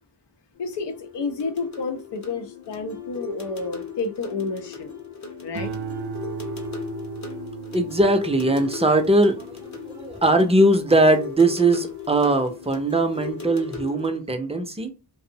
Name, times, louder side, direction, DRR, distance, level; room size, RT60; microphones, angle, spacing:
voice 1, 0.6-4.9 5.4-5.7, left 4 dB, 90° left, 0.6 m, -30 dB
sound 1, 0.6-14.2, left 6 dB, 45° left, 0.7 m, -37 dB
sound 2, 5.5-12.1 12.5-13.0, right 6 dB, 70° right, 0.5 m, -37 dB
voice 2, 7.7-14.9, right 2 dB, 15° right, 0.4 m, -20 dB
2.5 x 2.0 x 2.7 m
wide cardioid pair, 65°, 41 cm